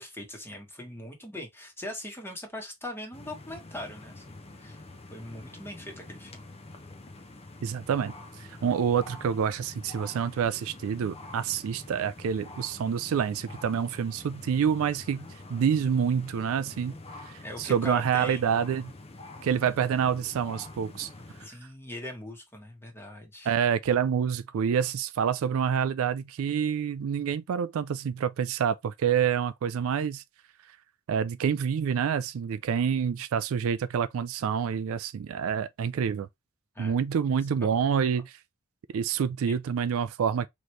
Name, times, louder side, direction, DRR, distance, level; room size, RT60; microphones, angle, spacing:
voice 1, 0.0-4.8 5.1-6.5 15.2-15.3 17.4-18.6 21.4-23.5 36.7-37.0 37.6-37.8 39.5-39.6, left 1 dB, 10° left, 1.3 m, -41 dB
sound 1, 3.1-21.5, left 2 dB, 30° left, 0.7 m, -46 dB
voice 2, 7.6-8.1 8.5-16.9 17.3-18.9 19.4-21.1 23.5-30.2 31.1-36.3 36.8-38.3 38.9-40.5, right 7 dB, 65° right, 0.3 m, -27 dB
4.0 x 3.1 x 3.2 m
head